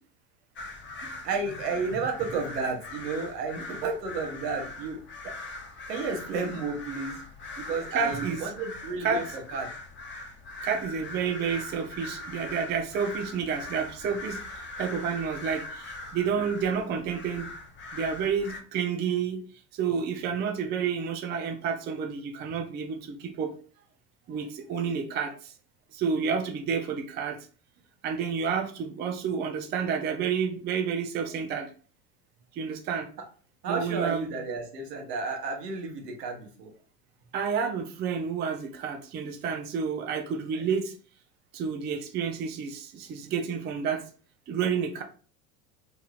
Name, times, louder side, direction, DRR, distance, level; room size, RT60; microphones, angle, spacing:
sound 1, 0.6-18.6, left 2 dB, 25° left, 0.7 m, -41 dB
voice 1, 1.2-5.0 5.2-5.3 5.9-7.2 7.6-9.7 33.6-36.7 40.5-40.6, right 4 dB, 80° right, 2 dB, 1.1 m, -32 dB
voice 2, 7.9-8.4 9.0-9.2 10.6-17.5 17.9-19.4 19.7-23.5 24.3-25.5 25.9-27.4 28.0-31.7 32.5-33.1 33.7-34.3 37.3-40.9 41.5-44.0 44.5-45.0, right 6 dB, 25° right, 3 dB, 0.4 m, -30 dB
3.0 x 2.7 x 2.4 m, 0.40 s
hypercardioid pair, 90°, 48 cm